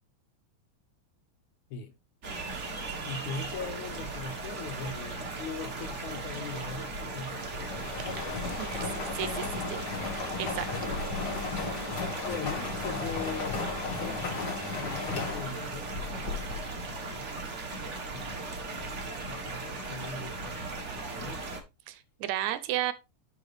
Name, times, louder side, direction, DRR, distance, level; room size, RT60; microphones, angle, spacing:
sound 1, 2.2-21.6, right 3 dB, 40° right, 1.1 m, -38 dB
voice 1, 3.0-8.8 10.7-10.9 12.2-17.3 18.1-21.6, left 5 dB, 80° left, 2.7 m, -41 dB
sound 2, 7.5-16.8, left 4 dB, 45° left, 1.7 m, -35 dB
voice 2, 8.6-9.8 10.4-10.7 21.9-22.9, right 13 dB, 80° right, 2.1 m, -33 dB
10.5 x 4.6 x 3.3 m
omnidirectional pair, 3.3 m